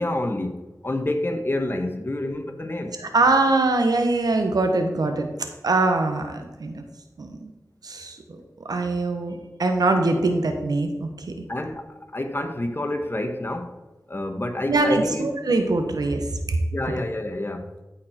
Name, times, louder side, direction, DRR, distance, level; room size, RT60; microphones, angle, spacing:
voice 1, 0.0-3.0 11.5-13.7 14.1-15.3 16.7-17.7, left 1 dB, 35° left, 1.1 m, -28 dB
voice 2, 3.0-6.8 7.2-7.5 7.8-8.4 8.6-11.3 14.7-16.6, right 2 dB, 85° right, 1.1 m, -23 dB
12.5 x 4.6 x 4.4 m
cardioid pair, 45°, 7 cm